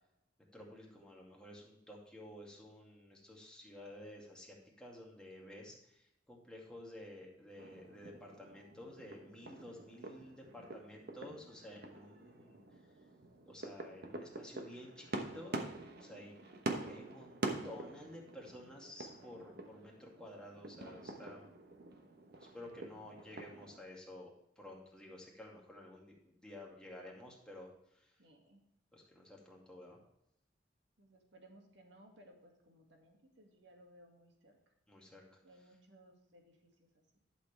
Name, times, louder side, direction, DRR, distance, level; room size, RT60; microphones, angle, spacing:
voice 1, 0.5-5.7 6.3-12.6 13.5-15.7 16.0-16.3 16.9-17.4 17.6-21.5 22.5-24.3 24.6-27.7 28.9-30.0 34.9-35.2, left 1 dB, 5° left, -3 dB, 2.3 m, -52 dB
sound 1, 7.6-23.8, right 2 dB, 60° right, 1.1 m, -46 dB
voice 2, 16.1-16.7 28.2-28.6 31.0-34.6 35.4-37.0, right 1 dB, 75° right, 2 dB, 2.1 m, -62 dB
11.0 x 6.9 x 3.4 m, 0.81 s
head